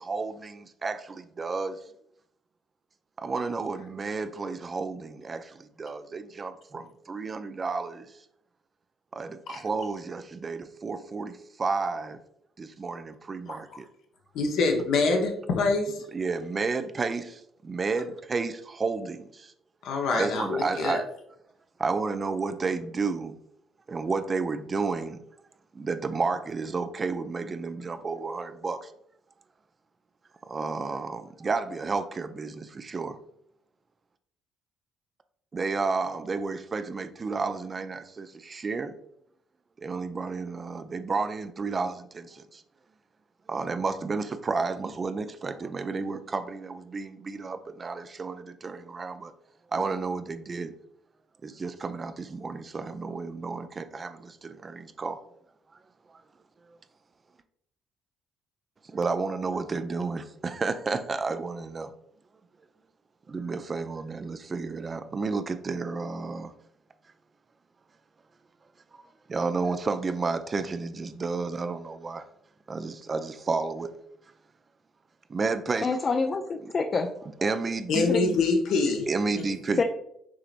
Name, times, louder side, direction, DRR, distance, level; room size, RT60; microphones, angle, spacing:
voice 1, 0.0-1.8 3.2-8.1 9.1-12.2 12.6-13.9 16.1-19.5 20.1-21.1 21.8-23.4 23.9-25.2 25.7-28.9 30.5-33.2 35.5-38.9 39.8-42.6 43.5-49.3 49.7-50.7 51.4-55.2 56.1-56.2 58.8-61.9 63.3-66.5 68.9-69.0 69.3-72.2 72.7-73.9 75.3-75.9 76.6-76.7 77.4-78.1 79.1-79.8, right 4 dB, 35° right, 10 dB, 0.4 m, -31 dB
voice 2, 13.5-13.8 14.3-16.0 19.8-21.0 77.9-79.1 79.4-79.5, left 3 dB, 70° left, 2 dB, 0.8 m, -25 dB
voice 3, 75.8-77.1 78.1-78.4 79.8-79.9, left 4 dB, 40° left, 5 dB, 0.4 m, -26 dB
6.1 x 2.9 x 2.5 m, 0.73 s
hypercardioid pair, 55°, 0 cm